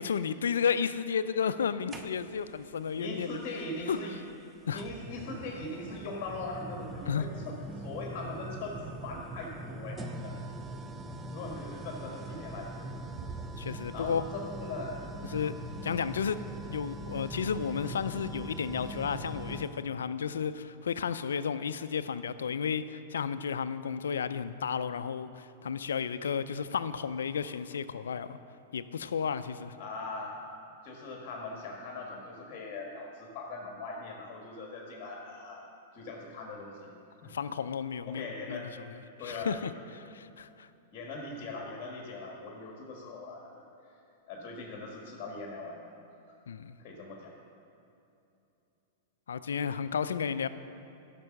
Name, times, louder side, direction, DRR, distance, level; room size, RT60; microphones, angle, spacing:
voice 1, 0.0-3.4 3.9-4.0 4.7-4.8 7.1-7.3 13.6-14.2 15.3-15.5 15.8-16.4 16.7-28.4 28.7-29.7 37.2-38.7 39.2-40.7 46.5-46.8 49.3-50.5, left 7 dB, 85° left, 14 dB, 0.4 m, -32 dB
sound 1, 1.9-2.5 3.9-4.0 4.8-19.8, right 2 dB, 20° right, 0.7 m, -42 dB
voice 2, 3.0-4.2 4.7-10.4 11.3-12.7 13.9-15.0 15.4-15.6 29.8-30.4 30.8-35.7 35.9-36.9 37.2-37.3 38.0-38.7 39.2-39.7 40.9-43.6 44.3-45.8 46.8-47.3, left 2 dB, 40° left, -1 dB, 1.5 m, -40 dB
10.5 x 6.0 x 6.5 m, 2.8 s
hypercardioid pair, 110°, 0 cm